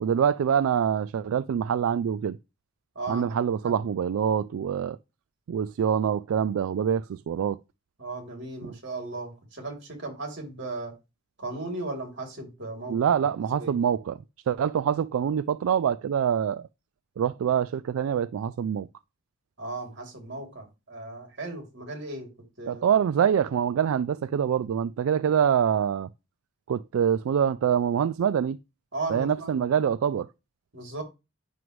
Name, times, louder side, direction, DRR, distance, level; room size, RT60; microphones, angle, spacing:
voice 1, 0.0-2.4 3.1-5.0 5.5-7.6 12.9-14.1 14.5-16.7 17.2-18.9 22.7-26.1 26.7-28.6 29.1-30.3, right 8 dB, 85° right, 0.3 m, -25 dB
voice 2, 2.9-3.3 3.6-3.8 8.0-10.9 11.4-13.7 19.6-22.3 22.6-22.9 28.9-29.6 30.7-31.0, right 2 dB, 60° right, 2.9 m, -36 dB
9.3 x 6.1 x 3.1 m
head